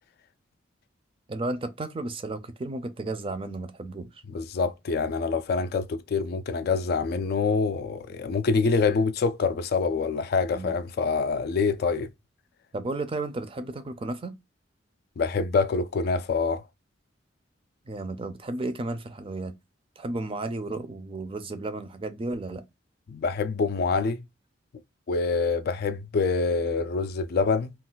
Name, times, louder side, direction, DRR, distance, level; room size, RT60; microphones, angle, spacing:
voice 1, 1.3-4.2 10.5-10.8 12.7-14.3 17.9-19.5 20.0-22.6, right 2 dB, 30° right, 0.4 m, -33 dB
voice 2, 4.3-12.1 15.2-16.6 23.1-24.2 25.1-27.7, left 4 dB, 55° left, 0.3 m, -26 dB
2.4 x 2.2 x 3.7 m
head